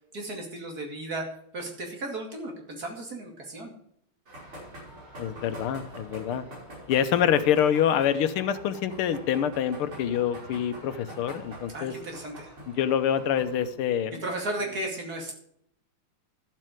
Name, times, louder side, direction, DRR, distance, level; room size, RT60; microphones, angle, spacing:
voice 1, 0.1-1.2 1.5-3.7 11.7-12.5 14.2-15.3, right 2 dB, 45° right, 2 dB, 2.8 m, -35 dB
sound 1, 4.3-13.7, right 1 dB, 80° right, 6.2 m, -45 dB
voice 2, 5.2-6.4 6.9-11.9 12.7-14.2, left 9 dB, 90° left, 11 dB, 1.7 m, -26 dB
12.5 x 7.6 x 5.0 m, 0.69 s
omnidirectional pair, 2.4 m